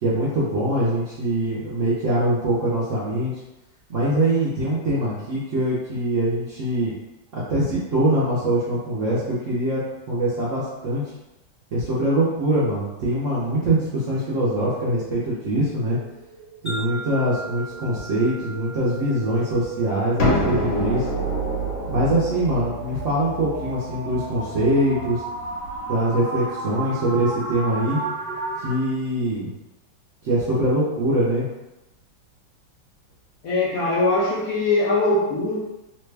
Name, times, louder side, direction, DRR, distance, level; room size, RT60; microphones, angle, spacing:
voice 1, 0.0-3.3 3.9-6.9 7.3-9.8 10.1-11.0 11.7-16.0 16.6-21.1 21.9-25.2 25.9-28.0 28.6-29.5 30.2-31.5, right 1 dB, 60° right, -9 dB, 0.8 m, -23 dB
sound 1, 15.6-28.8, right 3 dB, 80° right, 1.2 m, -35 dB
Wind chime, 16.7-20.9, right 2 dB, 20° left, 0.7 m, -39 dB
sound 2, 20.2-25.8, equal, 90° left, 1.5 m, -27 dB
voice 2, 33.4-35.5, left 2 dB, 65° left, -7 dB, 0.9 m, -21 dB
3.2 x 2.2 x 3.2 m, 0.99 s
omnidirectional pair, 2.0 m